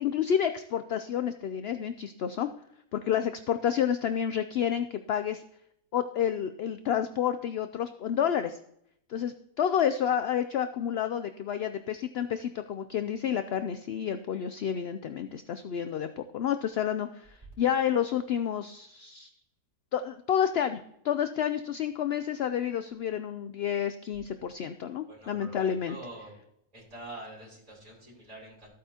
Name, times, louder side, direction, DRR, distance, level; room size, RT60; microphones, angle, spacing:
voice 1, 0.0-2.5 2.9-5.4 5.9-8.6 9.1-19.3 19.9-20.8 21.0-26.0, left 9 dB, 70° left, 10 dB, 0.6 m, -29 dB
voice 2, 25.1-26.3 26.7-28.7, right 1 dB, 25° right, -7 dB, 4.6 m, -46 dB
14.0 x 8.5 x 2.8 m, 0.74 s
omnidirectional pair, 1.6 m